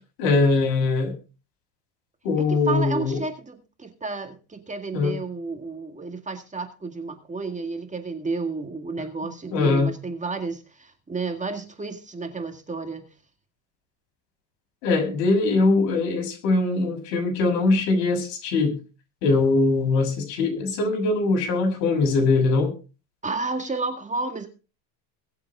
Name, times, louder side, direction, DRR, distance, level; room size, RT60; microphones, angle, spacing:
voice 1, 0.2-1.2 2.2-3.2 4.9-5.2 9.5-9.9 14.8-18.7 19.2-22.7, left 3 dB, 80° left, 3 dB, 6.9 m, -22 dB
voice 2, 2.4-13.1 23.2-24.5, right 3 dB, 15° right, 6 dB, 2.1 m, -31 dB
22.5 x 7.6 x 3.7 m, 0.33 s
supercardioid pair, 115°, 49 cm